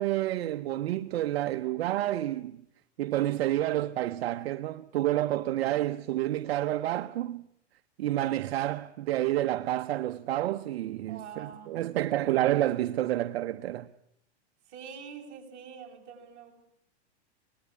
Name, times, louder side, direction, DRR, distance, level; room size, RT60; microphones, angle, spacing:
voice 1, 0.0-2.6 3.0-7.4 8.0-13.9, right 14 dB, 65° right, 0.9 m, -29 dB
voice 2, 11.1-11.8 14.7-16.5, right 7 dB, 35° right, 7.3 m, -45 dB
25.0 x 19.5 x 8.6 m
supercardioid pair, 150°, 34 cm